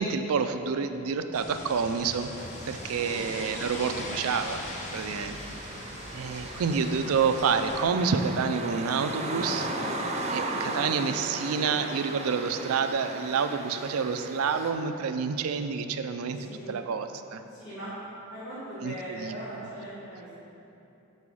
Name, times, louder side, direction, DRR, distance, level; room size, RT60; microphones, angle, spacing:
voice 1, 0.0-4.7 4.9-5.4 6.1-9.7 10.3-17.4 18.8-19.4, right 5 dB, 85° right, 9 dB, 0.4 m, -28 dB
sound 1, 1.3-7.8, left 1 dB, 35° left, 0.8 m, -40 dB
sound 2, 2.4-14.7, right 2 dB, 30° right, 0.6 m, -37 dB
voice 2, 3.0-4.1 16.3-16.7 17.5-17.9 18.3-20.3, equal, 65° left, -11 dB, 1.6 m, -41 dB
6.8 x 5.5 x 4.8 m, 2.9 s
head